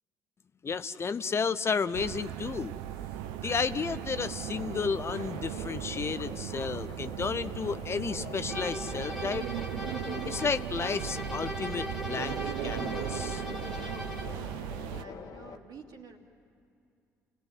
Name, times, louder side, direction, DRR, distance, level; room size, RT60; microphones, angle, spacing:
voice 1, 0.6-2.8 3.4-9.5 10.2-13.4, left 5 dB, 30° left, 13 dB, 0.6 m, -32 dB
sound 1, 1.9-15.0, right 11 dB, 65° right, 0.7 m, -37 dB
Subway metro underground, 4.2-15.6, left 5 dB, 50° left, 1.4 m, -45 dB
sound 2, 8.5-14.4, left 1 dB, ahead, 2.1 m, -40 dB
voice 2, 13.8-16.2, right 4 dB, 50° right, 3 dB, 2.6 m, -49 dB
29.0 x 17.5 x 9.5 m, 2.5 s
figure-of-eight pair, 50°, 8 cm